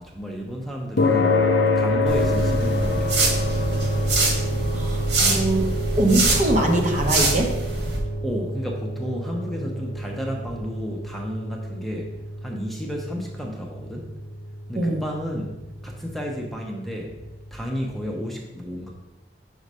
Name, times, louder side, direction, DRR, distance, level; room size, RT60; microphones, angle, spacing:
voice 1, 0.0-3.7 8.2-14.1 14.7-15.6 15.8-17.2 17.5-18.9, equal, ahead, -1 dB, 0.7 m, -32 dB
sound 1, 1.0-17.5, left 1 dB, 70° left, 0.7 m, -27 dB
sound 2, 2.1-8.0, right 2 dB, 85° right, 1.9 m, -25 dB
voice 2, 4.7-7.6 14.8-15.0, right 1 dB, 45° right, 2 dB, 0.9 m, -23 dB
5.1 x 4.7 x 5.4 m, 1.0 s
head